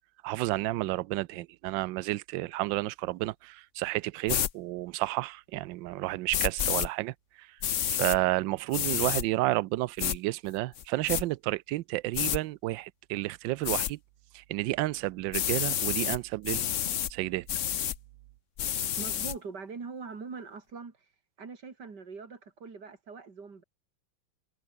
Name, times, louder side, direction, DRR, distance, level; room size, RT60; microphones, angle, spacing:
voice 1, 0.2-7.5 7.9-14.0 14.3-16.6 17.1-17.5, right 17 dB, 75° right, 1.3 m, -31 dB
sound 1, 4.3-4.5 6.3-6.9 7.6-8.2 8.7-9.2 10.0-10.2 10.8-11.2 12.1-12.4 13.6-13.9 15.3-16.2 16.4-17.1 17.5-18.0 18.6-19.3, left 10 dB, 55° left, 0.8 m, -29 dB
voice 2, 19.0-21.0 21.4-23.6, right 5 dB, 55° right, 3.6 m, -42 dB
omnidirectional pair, 2.2 m